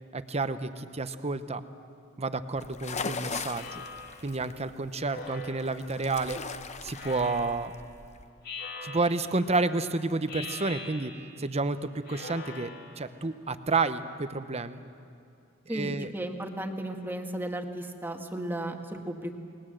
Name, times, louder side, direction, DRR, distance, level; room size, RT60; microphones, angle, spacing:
voice 1, 0.1-1.6 2.2-3.8 4.2-6.4 6.8-7.7 8.8-11.1 11.4-14.8 15.7-16.1, right 3 dB, 30° right, 11 dB, 0.9 m, -30 dB
sound 1, 2.5-8.3, left 5 dB, 35° left, 0.8 m, -40 dB
Speech synthesizer, 3.5-4.3 5.1-6.0 6.9-7.8 8.4-9.5 10.3-11.5 12.0-13.1, left 3 dB, 50° left, 2.6 m, -42 dB
voice 2, 15.7-19.4, right 1 dB, 10° right, 4 dB, 1.6 m, -35 dB
29.0 x 20.5 x 7.8 m, 2.5 s
head